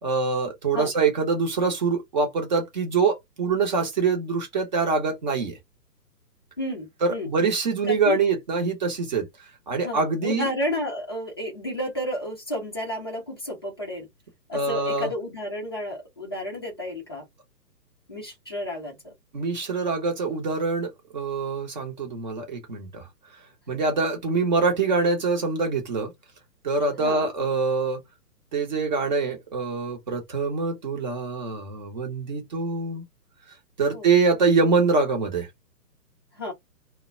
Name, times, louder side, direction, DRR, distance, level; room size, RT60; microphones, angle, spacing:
voice 1, 0.0-5.6 7.0-9.3 9.7-10.5 14.5-15.1 19.3-23.1 23.7-26.1 26.6-28.0 28.5-33.0 33.8-35.5, right 4 dB, 25° right, 0.7 m, -24 dB
voice 2, 6.6-7.3 7.9-8.2 9.8-14.1 14.5-17.2 18.1-19.1 27.0-27.3 33.9-34.1 36.3-36.5, left 1 dB, 15° left, 0.4 m, -31 dB
2.1 x 2.1 x 3.6 m
hypercardioid pair, 145°, 50 cm